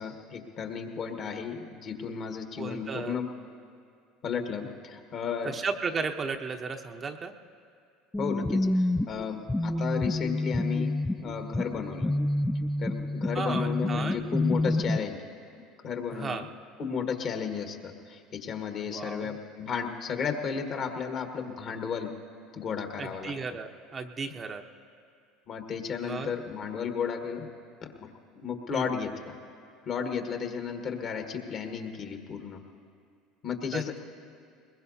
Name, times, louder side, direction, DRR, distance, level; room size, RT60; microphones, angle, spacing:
voice 1, 0.0-3.3 4.2-5.6 8.2-12.1 12.8-15.2 15.8-16.5 16.8-22.2 22.5-23.3 25.5-27.5 28.0-29.3 29.8-32.6 33.4-34.0, left 6 dB, 50° left, 4 dB, 1.6 m, -34 dB
voice 2, 2.6-3.2 5.4-7.4 13.3-14.2 16.1-16.4 18.8-19.4 23.0-24.6 26.0-26.3 28.7-28.9 33.7-34.0, right 4 dB, 35° right, 5 dB, 0.9 m, -34 dB
sound 1, 8.1-15.0, left 2 dB, 10° left, 0.4 m, -28 dB
21.5 x 21.0 x 2.8 m, 2.4 s
hypercardioid pair, 80°, 0 cm